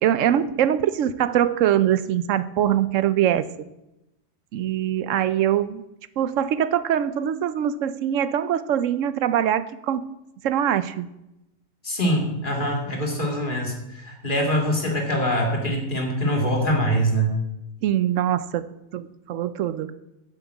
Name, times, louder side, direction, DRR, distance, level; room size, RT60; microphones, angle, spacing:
voice 1, 0.0-3.5 4.5-5.8 6.2-10.0 10.4-11.1 17.8-18.7 18.9-19.9, right 10 dB, 75° right, 15 dB, 1.0 m, -23 dB
voice 2, 11.8-17.4, equal, 40° left, 1 dB, 2.6 m, -24 dB
8.7 x 7.5 x 8.2 m, 0.90 s
omnidirectional pair, 1.4 m